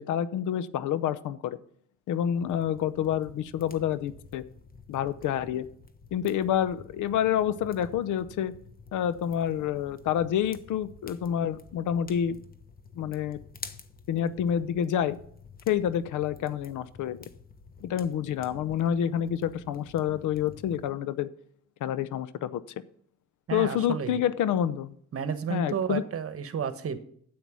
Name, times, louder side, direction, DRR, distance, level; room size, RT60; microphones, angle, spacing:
voice 1, 0.0-1.6 2.1-4.4 4.9-5.7 6.1-8.5 8.9-12.4 12.9-13.4 14.1-15.2 15.7-17.2 17.8-21.3 21.8-22.6 23.5-24.9 25.5-26.0, left 9 dB, 80° left, 16 dB, 0.7 m, -28 dB
sound 1, 2.3-20.9, left 5 dB, 30° left, 1.1 m, -50 dB
voice 2, 23.5-24.3 25.1-27.0, right 7 dB, 50° right, 12 dB, 1.2 m, -32 dB
9.3 x 8.7 x 6.2 m, 0.64 s
cardioid pair, 90°, 30 cm